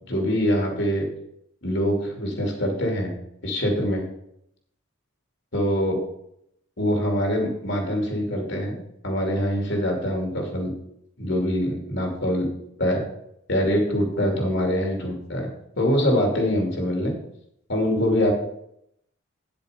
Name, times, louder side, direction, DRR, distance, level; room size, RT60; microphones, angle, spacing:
voice 1, 0.1-1.1 1.6-3.1 3.4-4.0 5.5-6.0 6.8-10.7 11.2-12.5 12.8-13.0 13.5-15.5 15.8-17.1 17.7-18.3, equal, 55° left, 2 dB, 2.7 m, -24 dB
9.4 x 7.7 x 5.1 m, 0.75 s
head